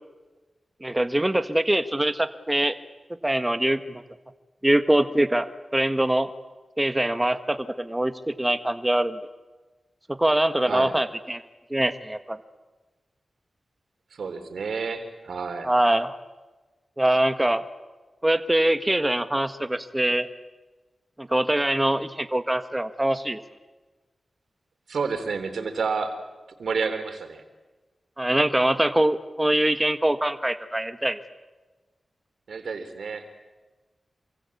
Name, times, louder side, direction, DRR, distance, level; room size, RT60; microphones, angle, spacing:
voice 1, 0.8-2.8 3.2-4.0 4.6-5.5 5.7-6.3 6.8-9.2 10.1-11.4 11.7-12.4 15.6-16.1 17.0-17.6 18.2-20.3 21.2-23.4 28.2-31.2, right 1 dB, 15° right, 9 dB, 1.6 m, -23 dB
voice 2, 14.1-15.7 24.9-26.1 26.6-27.4 32.5-33.2, right 5 dB, 85° right, 8 dB, 3.7 m, -30 dB
27.5 x 24.5 x 8.6 m, 1.2 s
cardioid pair, 65°, 0 cm